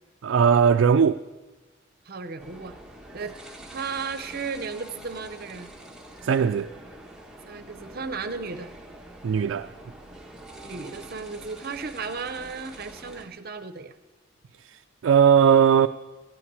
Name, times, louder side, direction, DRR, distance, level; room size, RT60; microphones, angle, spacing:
voice 1, 0.2-1.2 6.2-6.7 9.2-9.7 14.6-15.9, right 7 dB, 70° right, 0.3 m, -19 dB
voice 2, 2.1-2.8 3.1-3.4 3.7-5.7 7.5-8.7 10.6-13.9, right 4 dB, 50° right, 0.7 m, -35 dB
sound 1, 2.4-13.3, right 1 dB, 5° right, 1.2 m, -45 dB
15.0 x 5.8 x 9.5 m
head